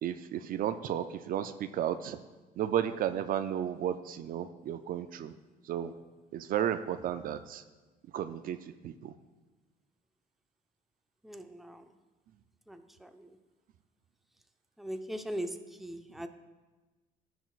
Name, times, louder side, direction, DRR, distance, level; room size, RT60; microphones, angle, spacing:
voice 1, 0.0-2.2 2.6-5.3 5.6-5.9 6.3-7.6 8.1-8.6 8.8-9.1, right 10 dB, 55° right, 11 dB, 0.4 m, -33 dB
voice 2, 11.2-12.0 12.7-13.4 14.8-16.3, equal, ahead, 7 dB, 0.5 m, -40 dB
15.5 x 6.1 x 2.4 m, 1.2 s
cardioid pair, 110°, 17 cm